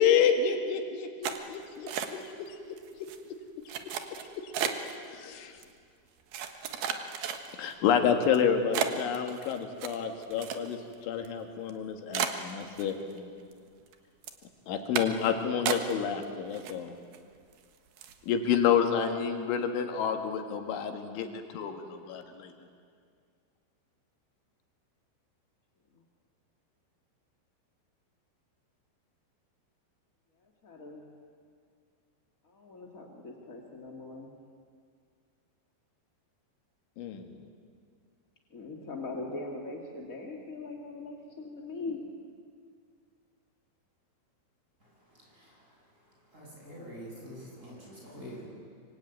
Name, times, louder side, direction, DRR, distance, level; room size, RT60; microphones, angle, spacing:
voice 1, 0.0-2.0 2.4-2.6 4.4-4.5 5.1-5.5 7.6-13.3 14.7-16.9 18.3-22.5 37.0-37.2, left 7 dB, 80° left, 5 dB, 4.1 m, -29 dB
sound 1, 1.2-2.5 2.8-3.2 3.7-5.0 5.6-5.7 6.3-7.7 8.2-8.4 8.7-10.9 11.2-11.3 11.7-11.8 12.1-13.2 13.5-13.9 14.2-14.4 14.9-15.3 15.7-16.2 16.5-17.2 17.5-17.6 18.0-18.2, right 8 dB, 65° right, 2.9 m, -34 dB
voice 2, 30.4-31.0 32.4-34.3 38.5-42.0, left 3 dB, 35° left, 0 dB, 1.3 m, -41 dB
voice 3, 44.8-45.8 46.3-48.5, equal, 15° right, -3 dB, 8.0 m, -46 dB
25.5 x 24.5 x 9.3 m, 2.1 s
omnidirectional pair, 5.4 m